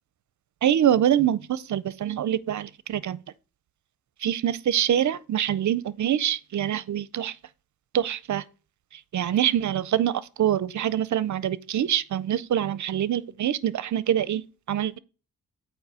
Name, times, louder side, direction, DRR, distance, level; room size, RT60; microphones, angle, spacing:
voice 1, 0.6-3.2 4.2-7.4 7.9-8.4 8.9-15.0, right 10 dB, 50° right, 0.5 m, -25 dB
8.7 x 3.1 x 6.1 m
wide cardioid pair, 115°, 37 cm